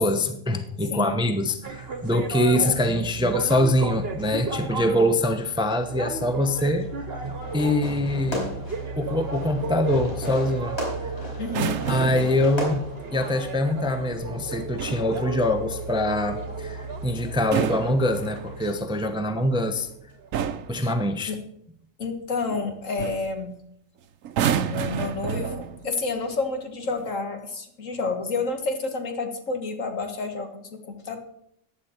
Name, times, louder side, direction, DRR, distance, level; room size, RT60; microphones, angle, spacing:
voice 1, 0.0-6.9 7.5-8.6 9.0-11.1 11.9-12.9 13.1-19.9 20.7-21.3, left 1 dB, 5° right, 7 dB, 0.7 m, -24 dB
sound 1, 1.6-20.3, right 3 dB, 50° right, 1.3 m, -35 dB
Fireworks, 7.4-13.4, left 1 dB, 55° left, 4.6 m, -35 dB
voice 2, 11.4-11.8 20.8-20.9 21.3-21.4 22.0-23.5 24.7-31.2, left 3 dB, 70° left, 5 dB, 1.9 m, -29 dB
sound 2, 11.4-12.4 14.5-15.1 17.3-18.7 19.7-19.9 20.3-20.8 22.5-22.7 23.0-23.3 24.2-25.9 26.8-27.1, right 8 dB, 80° right, 1.1 m, -29 dB
15.0 x 9.8 x 4.4 m, 0.72 s
omnidirectional pair, 1.4 m